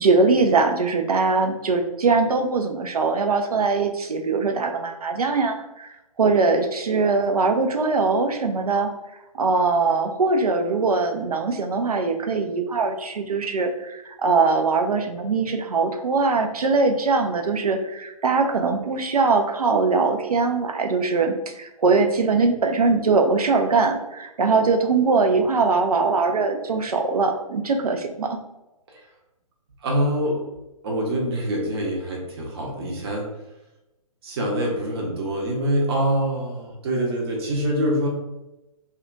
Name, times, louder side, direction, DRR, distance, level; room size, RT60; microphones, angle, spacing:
voice 1, 0.0-8.9 9.3-28.4, right 4 dB, 80° right, 5 dB, 0.4 m, -21 dB
voice 2, 29.8-30.4 30.8-33.3 34.2-38.1, equal, 40° right, -1 dB, 0.7 m, -25 dB
2.7 x 2.2 x 2.5 m, 0.94 s
figure-of-eight pair, 130°, 19 cm